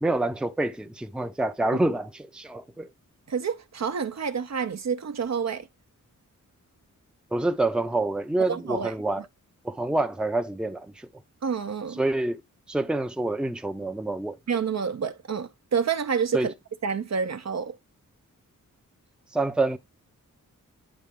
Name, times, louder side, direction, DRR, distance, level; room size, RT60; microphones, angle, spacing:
voice 1, 0.0-2.9 7.3-9.2 9.6-11.1 12.0-12.4 12.7-14.4 16.3-16.5 19.3-19.8, right 2 dB, 5° right, 0.6 m, -27 dB
voice 2, 3.3-5.7 8.4-8.9 11.4-12.0 14.5-16.5 16.8-17.8, right 6 dB, 55° right, 0.8 m, -28 dB
9.7 x 4.0 x 3.7 m
wide cardioid pair, 115°, 33 cm